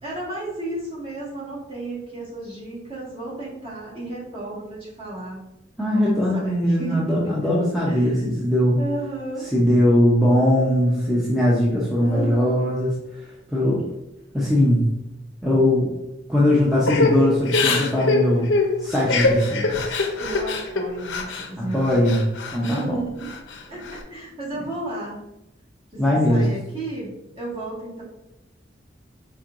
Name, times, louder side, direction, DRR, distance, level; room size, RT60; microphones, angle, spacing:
voice 1, 0.0-5.4 5.9-7.0 7.8-8.2 8.8-9.5 12.0-12.6 18.4-18.5 20.2-22.0 22.6-23.3 23.7-25.2 25.9-28.0, right 2 dB, 30° right, -6 dB, 1.7 m, -33 dB
voice 2, 5.8-8.8 9.5-13.8 14.3-14.8 15.4-15.9 16.3-18.5 18.8-20.0 21.6-22.2 22.5-23.0 26.0-26.5, left 1 dB, ahead, -7 dB, 0.7 m, -20 dB
Crying sobbing / Breathing, 16.9-21.5 21.8-22.8 23.2-24.0, left 3 dB, 85° left, 0.7 m, -23 dB
4.5 x 4.4 x 2.5 m, 0.90 s
head